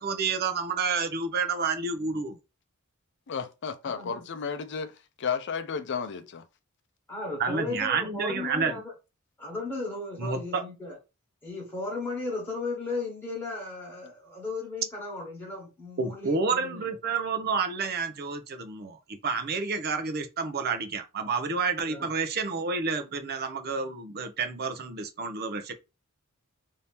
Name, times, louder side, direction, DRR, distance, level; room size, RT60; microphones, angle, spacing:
voice 1, 0.0-2.4 7.4-8.8 10.2-10.4 16.0-25.7, right 4 dB, 45° right, 0.6 m, -29 dB
voice 2, 3.3-6.4, left 6 dB, 55° left, 0.5 m, -33 dB
voice 3, 3.8-4.2 7.1-8.9 9.4-11.0 11.4-16.8 21.9-22.1, left 2 dB, 10° left, 1.3 m, -35 dB
2.8 x 2.7 x 3.4 m
head